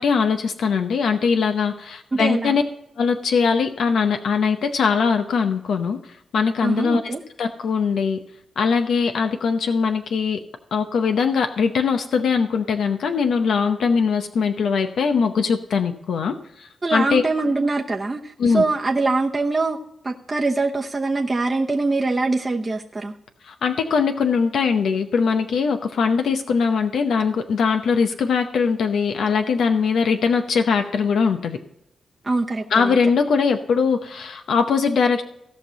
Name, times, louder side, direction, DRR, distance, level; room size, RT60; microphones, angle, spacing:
voice 1, 0.0-2.6 3.0-6.0 6.3-7.0 7.4-8.2 8.6-10.4 10.7-17.2 18.4-18.6 23.5-31.6 32.7-35.2, left 5 dB, 85° left, 6 dB, 0.7 m, -21 dB
voice 2, 2.1-2.6 6.6-7.2 16.8-19.8 20.0-23.1 32.2-33.0, right 3 dB, 30° right, 0 dB, 0.8 m, -23 dB
17.0 x 5.7 x 4.0 m, 0.83 s
cardioid pair, 85°, 0 cm